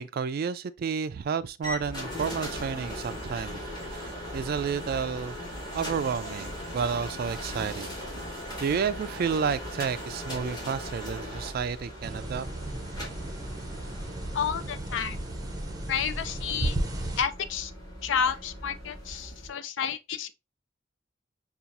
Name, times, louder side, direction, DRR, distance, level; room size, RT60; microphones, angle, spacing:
voice 1, 0.0-3.6 3.9-5.4 5.7-7.9 8.6-12.4, right 6 dB, 50° right, 0.3 m, -31 dB
sound 1, 1.6-19.5, equal, 20° left, 1.9 m, -39 dB
sound 2, 12.0-17.2, right 1 dB, 20° right, 0.6 m, -34 dB
voice 2, 14.3-15.2 15.9-16.8 17.2-17.7 18.0-20.3, left 7 dB, 70° left, 0.4 m, -30 dB
5.7 x 2.4 x 2.6 m
head